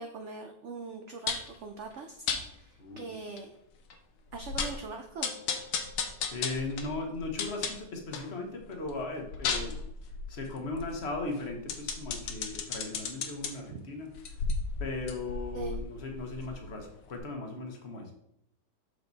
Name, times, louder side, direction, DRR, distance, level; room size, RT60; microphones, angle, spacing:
voice 1, 0.0-3.6 4.3-5.3 13.7-13.8 15.5-15.8, right 4 dB, 75° right, 5 dB, 0.6 m, -42 dB
sound 1, 1.3-1.6 2.3-2.4 3.0-3.1 3.4-3.5 3.9-4.0 4.3-4.8 5.2-8.3 8.7-13.5 14.1-16.8 17.1-17.2, left 5 dB, 85° left, 1.5 m, -34 dB
voice 2, 2.8-3.2 6.3-9.9 10.3-14.1 14.8-18.1, left 3 dB, 40° left, 3 dB, 1.2 m, -37 dB
6.5 x 4.8 x 4.0 m, 0.76 s
omnidirectional pair, 1.9 m